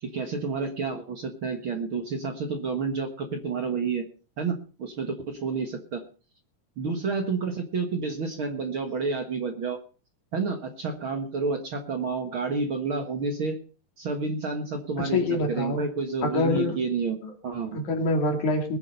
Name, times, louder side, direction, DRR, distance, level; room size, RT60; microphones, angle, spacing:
voice 1, 0.0-4.0 4.4-6.0 6.8-9.8 10.3-13.6 14.0-17.2 17.4-17.8, right 4 dB, 50° right, 5 dB, 1.9 m, -30 dB
voice 2, 15.1-15.8 16.2-16.8 17.2-17.3 17.7-18.8, left 2 dB, 65° left, 5 dB, 3.7 m, -25 dB
20.5 x 7.9 x 5.4 m, 0.37 s
omnidirectional pair, 3.7 m